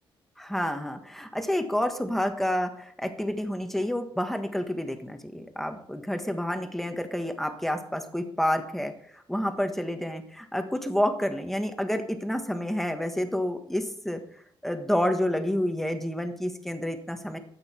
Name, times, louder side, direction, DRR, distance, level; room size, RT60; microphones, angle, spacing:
voice 1, 0.4-14.2 14.6-17.4, left 1 dB, 5° left, 7 dB, 1.4 m, -29 dB
13.0 x 8.9 x 4.4 m, 0.67 s
cardioid pair, 110°, 9 cm